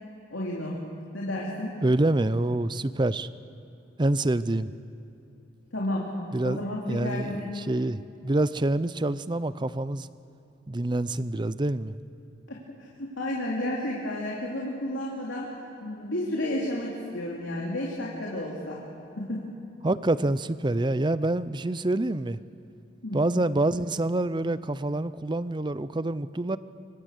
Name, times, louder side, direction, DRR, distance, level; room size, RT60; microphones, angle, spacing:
voice 1, 0.3-0.8 1.1-1.8 5.7-6.1 6.4-7.5 12.5-12.6 13.0-15.5 15.8-18.8 19.2-19.4 23.0-23.2, left 1 dB, 90° left, -4 dB, 3.2 m, -31 dB
voice 2, 1.8-3.3 4.0-4.7 6.3-6.6 6.9-10.1 10.7-12.0 19.8-22.4 23.1-26.6, right 2 dB, 25° right, 15 dB, 0.5 m, -26 dB
25.0 x 24.0 x 6.7 m, 2.9 s
head